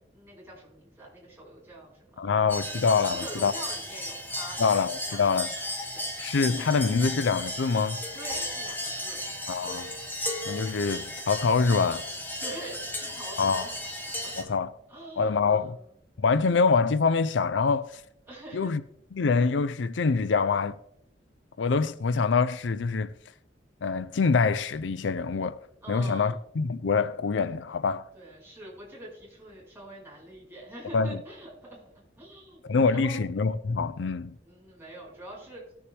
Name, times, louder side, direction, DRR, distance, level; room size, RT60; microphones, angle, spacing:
voice 1, 0.1-2.3 3.0-4.7 5.1-5.2 5.9-6.0 8.1-9.2 12.4-13.7 14.2-14.3 14.9-15.8 18.3-18.7 25.8-26.4 28.1-33.2 34.4-35.7, right 1 dB, 10° right, 5.2 m, -44 dB
voice 2, 2.2-3.5 4.6-5.5 6.2-8.0 9.5-9.9 10.5-12.1 13.4-13.7 14.4-14.7 15.2-15.7 16.2-18.0 18.5-18.8 19.1-20.8 21.6-23.1 23.8-25.6 25.9-28.1 30.9-31.2 32.6-34.4, left 4 dB, 85° left, 0.5 m, -25 dB
sound 1, 2.5-14.4, left 1 dB, 10° left, 1.3 m, -35 dB
18.5 x 7.0 x 3.4 m
head